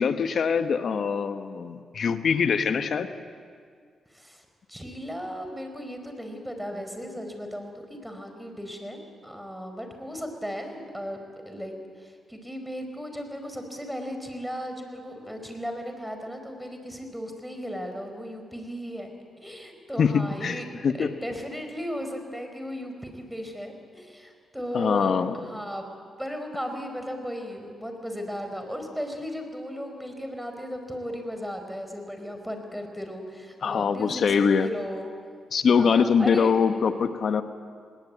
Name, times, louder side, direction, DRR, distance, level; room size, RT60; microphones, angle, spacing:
voice 1, 0.0-3.1 20.0-21.1 24.7-25.3 33.6-34.7 35.5-37.4, left 6 dB, 60° left, 10 dB, 1.2 m, -23 dB
voice 2, 4.1-11.2 11.4-19.1 19.4-25.8 26.2-35.1 35.8-36.5, equal, ahead, 5 dB, 4.8 m, -36 dB
19.5 x 18.5 x 8.5 m, 2.1 s
supercardioid pair, 55°, 0 cm